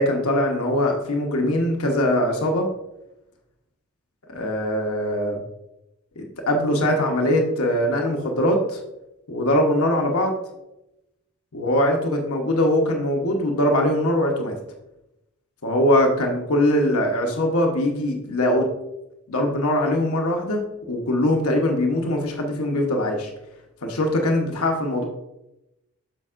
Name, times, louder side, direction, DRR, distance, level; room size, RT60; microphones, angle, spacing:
voice 1, 0.0-2.7 4.3-5.4 6.2-8.8 9.3-10.3 11.5-14.5 15.6-18.7 19.3-20.6 20.9-23.3 23.8-25.1, left 1 dB, 75° left, 2 dB, 1.0 m, -22 dB
8.9 x 6.5 x 2.5 m, 0.91 s
head